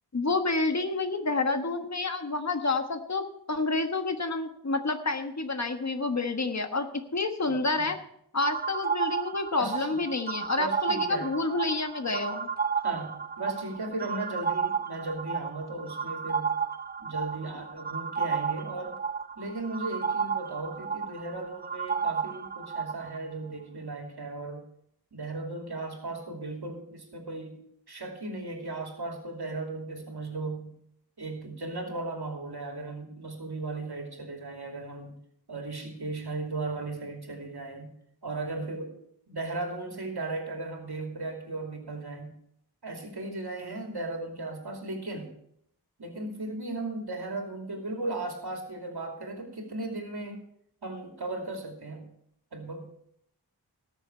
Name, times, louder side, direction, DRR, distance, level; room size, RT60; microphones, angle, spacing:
voice 1, 0.1-8.0 8.3-12.5, left 3 dB, 45° left, 6 dB, 1.4 m, -29 dB
voice 2, 7.5-7.9 9.6-10.0 10.6-11.3 12.8-16.6 17.0-19.0 19.4-24.6 25.1-27.6 27.9-30.7 31.2-35.1 35.5-37.9 38.2-38.9 39.3-42.4 42.8-45.3 46.0-50.4 50.8-52.1 52.5-52.9, right 2 dB, 75° right, 2 dB, 2.7 m, -36 dB
sound 1, 8.4-23.2, right 6 dB, 25° right, 0.6 m, -32 dB
18.5 x 6.8 x 4.4 m, 0.71 s
wide cardioid pair, 55°, 39 cm